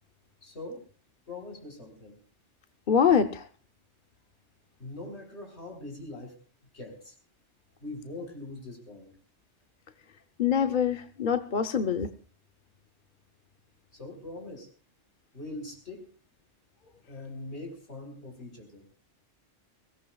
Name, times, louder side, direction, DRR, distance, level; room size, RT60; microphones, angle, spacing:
voice 1, 0.4-0.8 1.3-2.2 4.8-6.4 6.7-7.2 7.8-9.1 13.9-14.7 15.3-16.1 17.0-18.8, left 2 dB, 60° left, 3 dB, 4.3 m, -42 dB
voice 2, 2.9-3.4 10.4-12.1, left 7 dB, 45° left, 7 dB, 0.9 m, -24 dB
22.5 x 17.5 x 2.4 m, 0.37 s
omnidirectional pair, 1.3 m